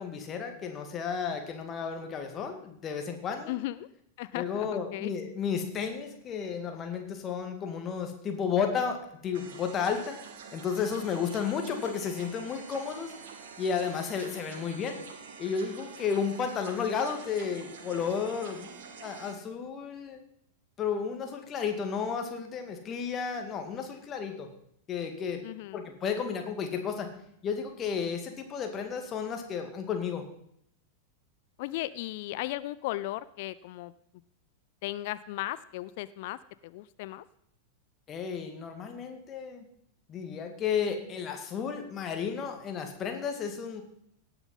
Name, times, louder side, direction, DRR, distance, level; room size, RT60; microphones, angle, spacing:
voice 1, 0.0-3.5 4.3-9.0 9.2-10.2 10.5-13.1 13.6-15.0 15.4-18.7 19.0-20.2 20.8-24.5 24.9-25.4 25.7-27.1 27.4-30.2 38.1-39.7 40.1-43.8, left 6 dB, 30° left, 5 dB, 2.2 m, -32 dB
voice 2, 3.5-3.9 4.2-5.1 25.4-25.8 31.6-33.9 34.8-37.2, left 16 dB, 50° left, 16 dB, 0.4 m, -36 dB
sound 1, 9.3-19.3, right 5 dB, 60° right, 1.9 m, -46 dB
18.0 x 7.1 x 5.6 m, 0.72 s
figure-of-eight pair, 90°, 0 cm